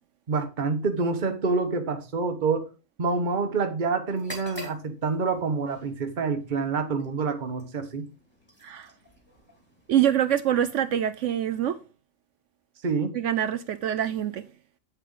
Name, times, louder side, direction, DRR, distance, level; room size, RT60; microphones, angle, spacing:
voice 1, 0.3-2.7 3.0-8.1 12.8-13.1, right 4 dB, 35° right, 1.2 m, -27 dB
sound 1, 4.1-11.9, equal, 20° left, 2.6 m, -48 dB
voice 2, 9.9-11.8 13.1-14.4, right 10 dB, 70° right, 0.8 m, -25 dB
8.1 x 7.4 x 3.8 m
omnidirectional pair, 1.5 m